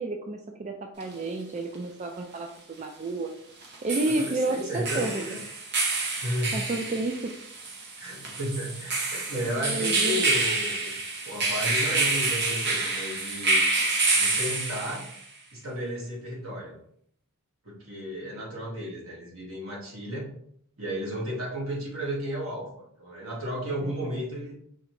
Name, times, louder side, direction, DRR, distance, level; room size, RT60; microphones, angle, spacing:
voice 1, 0.0-3.3 3.8-5.2 6.5-7.3 9.6-10.2 23.8-23.9, right 2 dB, 30° right, 3 dB, 0.3 m, -31 dB
sound 1, 1.0-1.1 3.6-15.2, right 3 dB, 50° right, 0.9 m, -28 dB
voice 2, 4.1-5.4 6.2-6.7 8.0-10.9 11.2-13.6 14.1-15.1 15.5-16.8 17.6-20.3 20.8-24.5, equal, 75° right, -3 dB, 1.7 m, -33 dB
4.9 x 3.2 x 3.1 m, 0.68 s
head